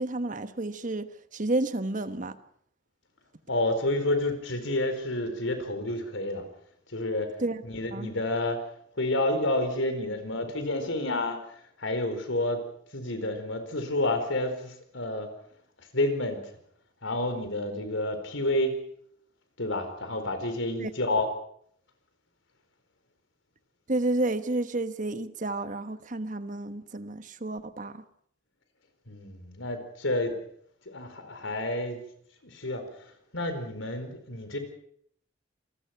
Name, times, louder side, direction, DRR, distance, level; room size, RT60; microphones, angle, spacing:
voice 1, 0.0-2.4 7.4-7.6 7.9-8.1 20.8-20.9 23.9-28.0, right 2 dB, 40° right, 1.3 m, -31 dB
voice 2, 3.5-6.4 6.9-7.3 7.6-8.6 9.0-11.4 11.8-12.6 12.9-15.3 15.9-16.4 17.0-18.8 19.6-21.3 29.1-30.4 30.9-32.0 32.5-32.8 33.3-34.6, left 1 dB, 85° left, 4.5 m, -29 dB
27.5 x 20.0 x 6.0 m
head